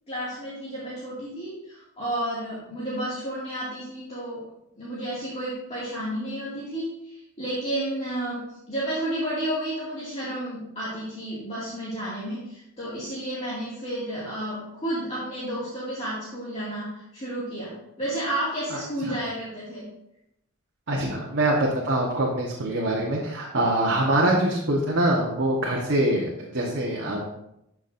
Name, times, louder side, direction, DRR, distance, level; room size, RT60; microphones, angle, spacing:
voice 1, 0.1-4.4 4.7-19.9, right 1 dB, 30° left, -9 dB, 2.2 m, -31 dB
voice 2, 20.9-27.3, right 1 dB, 55° right, -3 dB, 1.2 m, -24 dB
12.5 x 6.0 x 2.6 m, 0.83 s
head